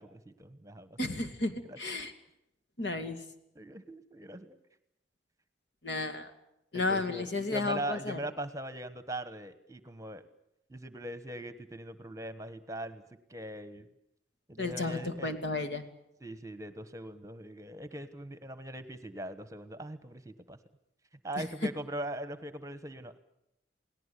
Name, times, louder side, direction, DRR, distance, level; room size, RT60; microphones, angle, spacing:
voice 1, 0.0-1.0 1.7-1.8 3.5-4.6 6.7-10.2 10.7-13.0 13.3-13.9 14.5-15.3 16.2-20.6 21.2-23.2, right 1 dB, 15° right, 12 dB, 1.3 m, -41 dB
voice 2, 1.0-2.1 2.8-3.2 5.8-6.3 6.7-8.2 14.6-15.8 21.4-21.5, left 2 dB, 70° left, 7 dB, 2.5 m, -33 dB
29.0 x 18.5 x 8.4 m, 0.82 s
head